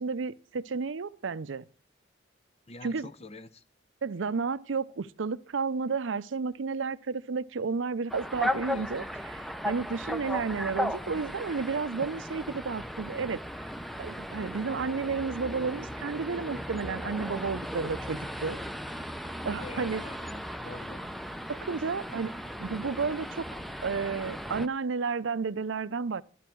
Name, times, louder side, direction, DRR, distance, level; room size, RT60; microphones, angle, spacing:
voice 1, 0.0-1.7 2.8-3.1 4.0-9.0 9.6-13.7 14.0-18.6 19.5-20.0 21.5-23.5 23.8-26.2, right 4 dB, 85° right, 0.6 m, -32 dB
voice 2, 2.7-3.6 8.6-9.1 10.0-10.3 19.6-21.2, left 2 dB, 35° left, 0.7 m, -46 dB
sound 1, 8.1-24.7, equal, ahead, 0.6 m, -36 dB
12.5 x 12.0 x 4.6 m
head